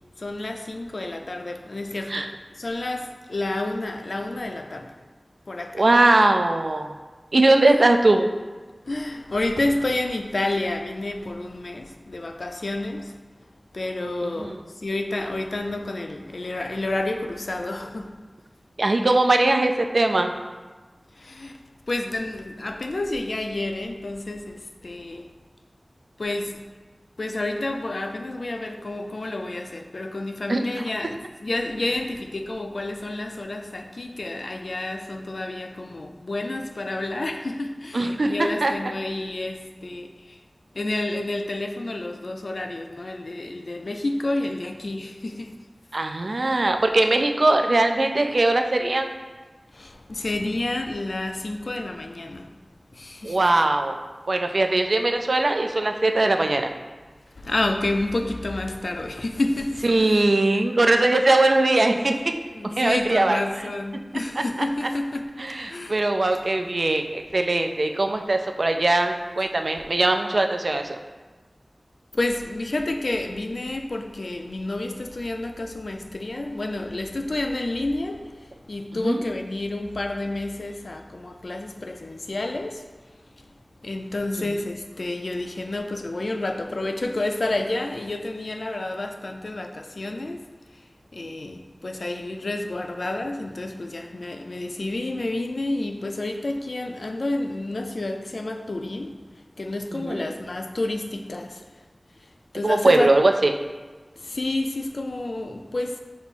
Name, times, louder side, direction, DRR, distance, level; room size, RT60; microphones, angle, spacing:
voice 1, 0.2-4.9 5.5-5.9 7.7-7.8 8.9-13.2 13.7-18.1 21.2-21.6 21.9-25.3 26.2-26.6 27.2-40.4 40.7-45.6 49.7-52.5 52.9-53.4 57.4-60.2 62.5-66.0 72.1-82.8 83.4-83.5 83.8-90.4 90.7-90.8 91.1-99.2 99.6-101.6 102.2-102.3 102.5-103.1 104.2-106.0, left 2 dB, 80° left, 5 dB, 0.3 m, -30 dB
voice 2, 5.7-6.9 7.3-8.3 14.2-14.6 18.8-20.3 30.5-30.6 37.9-38.7 45.9-49.1 53.2-54.0 54.3-56.7 59.8-62.3 62.8-63.4 65.4-71.0 79.0-79.2 99.9-100.3 102.6-103.5, right 2 dB, 75° right, 5 dB, 0.3 m, -20 dB
5.2 x 2.0 x 4.4 m, 1.3 s
wide cardioid pair, 55°, 0 cm